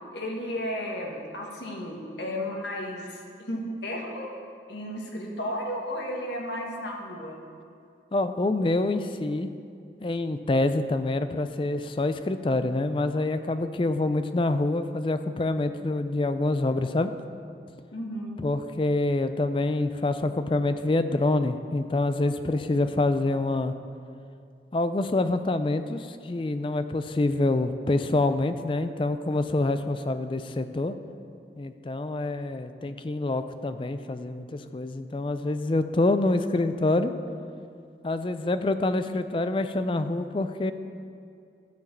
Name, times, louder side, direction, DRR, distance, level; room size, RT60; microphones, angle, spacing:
voice 1, 0.1-4.3 4.7-7.4 17.9-18.4, left 1 dB, 85° left, -1 dB, 1.8 m, -33 dB
voice 2, 8.1-9.5 10.0-17.1 18.4-23.7 24.7-31.0 31.6-37.1 38.0-40.7, left 2 dB, 30° left, 10 dB, 0.4 m, -26 dB
12.5 x 4.8 x 7.4 m, 2.5 s
head